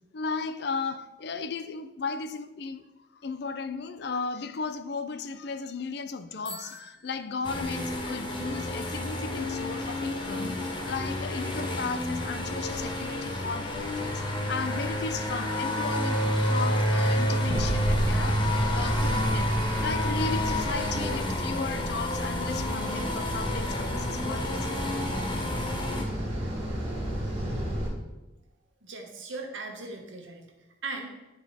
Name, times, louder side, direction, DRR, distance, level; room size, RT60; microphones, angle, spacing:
voice 1, 0.1-2.9 3.2-24.8, left 4 dB, 60° left, 0.5 m, -35 dB
Bicycle bell, 6.4-8.1, equal, 5° left, 1.4 m, -47 dB
sound 1, 7.4-26.0, equal, 25° left, 1.0 m, -29 dB
sound 2, 17.4-27.9, equal, 25° right, 2.5 m, -32 dB
voice 2, 28.8-30.4 30.8-31.1, right 3 dB, 90° right, 1.3 m, -38 dB
10.0 x 4.7 x 4.2 m
head